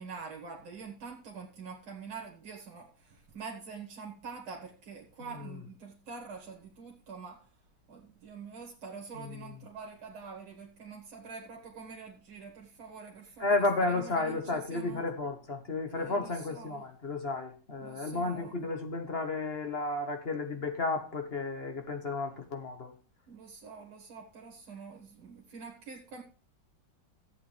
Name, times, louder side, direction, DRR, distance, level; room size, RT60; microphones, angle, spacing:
voice 1, 0.0-7.4 7.9-15.0 15.9-16.9 17.8-18.7 23.3-26.2, right 5 dB, 90° right, 0 dB, 2.2 m, -46 dB
voice 2, 13.4-22.9, left 3 dB, 35° left, 5 dB, 1.2 m, -32 dB
14.0 x 8.4 x 3.3 m, 0.37 s
omnidirectional pair, 2.1 m